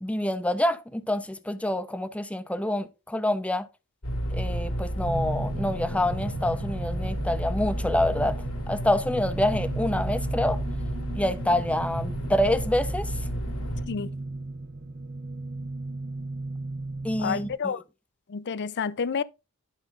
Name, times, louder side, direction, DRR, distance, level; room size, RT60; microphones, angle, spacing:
voice 1, 0.0-3.7 4.3-8.4 8.7-10.6 11.1-13.1 17.0-17.7, left 1 dB, 5° left, 0.6 m, -27 dB
sound 1, 4.0-13.9, equal, 85° left, 2.0 m, -32 dB
sound 2, 5.0-17.6, right 2 dB, 45° right, 0.8 m, -36 dB
voice 2, 17.2-17.8 18.3-19.2, left 6 dB, 55° left, 0.5 m, -29 dB
11.5 x 5.0 x 3.8 m
head